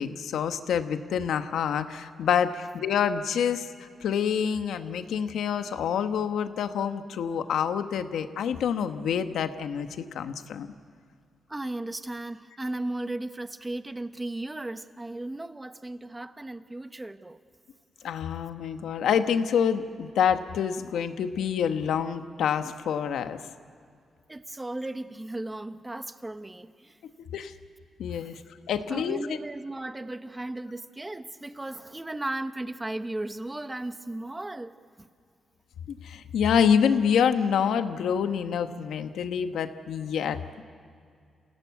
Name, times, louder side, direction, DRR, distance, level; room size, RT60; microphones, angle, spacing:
voice 1, 0.0-3.7 4.0-10.7 18.0-23.4 27.3-27.5 28.0-28.4 28.7-29.4 35.9-40.6, left 7 dB, 90° left, 9 dB, 1.2 m, -27 dB
voice 2, 11.5-17.4 24.3-27.0 28.1-28.3 28.7-35.1, right 2 dB, 15° right, 11 dB, 0.9 m, -36 dB
28.5 x 17.5 x 8.3 m, 2.3 s
cardioid pair, 105°, 0 cm